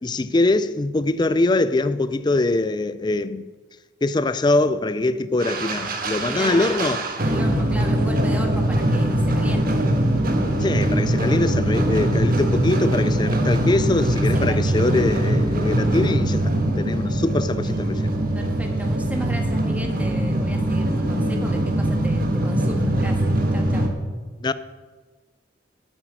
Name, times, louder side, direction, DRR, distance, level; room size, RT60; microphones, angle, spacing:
voice 1, 0.0-3.4 4.0-7.0 10.6-18.1 24.4-24.5, left 2 dB, 25° left, 0.4 m, -23 dB
sound 1, 5.4-23.9, right 1 dB, 50° right, 1.5 m, -22 dB
voice 2, 6.2-6.7 7.2-9.8 14.3-14.8 18.3-23.9, equal, 10° right, 1.6 m, -35 dB
8.9 x 8.3 x 9.1 m
head